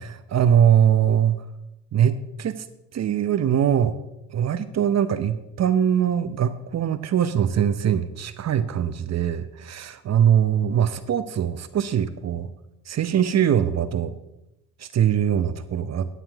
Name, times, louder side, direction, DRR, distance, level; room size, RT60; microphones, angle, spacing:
voice 1, 0.0-1.4 1.9-2.6 2.9-4.0 4.3-12.5 12.9-14.1 14.8-16.1, right 9 dB, 45° right, 11 dB, 1.0 m, -22 dB
17.5 x 7.4 x 3.6 m, 0.89 s
hypercardioid pair, 60°, 36 cm